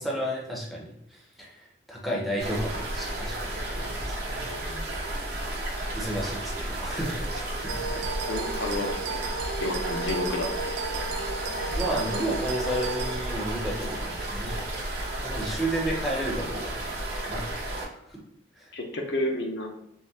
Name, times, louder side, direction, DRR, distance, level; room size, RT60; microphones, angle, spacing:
voice 1, 0.0-4.8 5.4-8.1 11.7-14.6 15.2-17.0 17.3-17.4 17.9-18.2 18.6-18.7, right 1 dB, ahead, -3 dB, 0.6 m, -33 dB
sound 1, 2.4-17.9, right 1 dB, 60° right, 0.8 m, -33 dB
sound 2, 7.7-13.2, right 4 dB, 90° right, 0.4 m, -34 dB
voice 2, 8.3-9.0 9.6-10.8 18.7-19.7, left 1 dB, 70° left, 2 dB, 0.6 m, -30 dB
3.6 x 2.1 x 2.6 m, 0.78 s
head